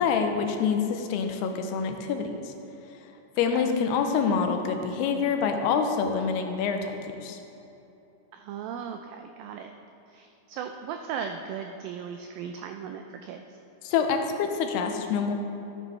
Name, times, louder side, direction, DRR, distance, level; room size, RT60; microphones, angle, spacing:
voice 1, 0.0-2.5 3.4-6.9 7.2-7.4 13.8-15.3, left 6 dB, 85° left, 5 dB, 2.7 m, -26 dB
voice 2, 8.3-9.7 10.1-13.6, right 7 dB, 90° right, 5 dB, 2.0 m, -37 dB
13.0 x 8.6 x 3.1 m, 2.9 s
omnidirectional pair, 4.6 m